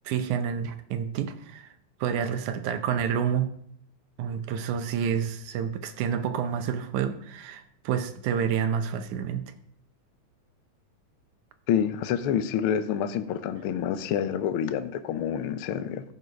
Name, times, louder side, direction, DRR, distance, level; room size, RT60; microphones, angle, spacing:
voice 1, 0.1-1.7 2.0-3.5 4.2-9.5, right 8 dB, 85° right, 8 dB, 2.2 m, -29 dB
voice 2, 11.7-16.0, left 9 dB, 90° left, 10 dB, 1.2 m, -27 dB
14.0 x 5.6 x 5.2 m, 0.64 s
omnidirectional pair, 3.4 m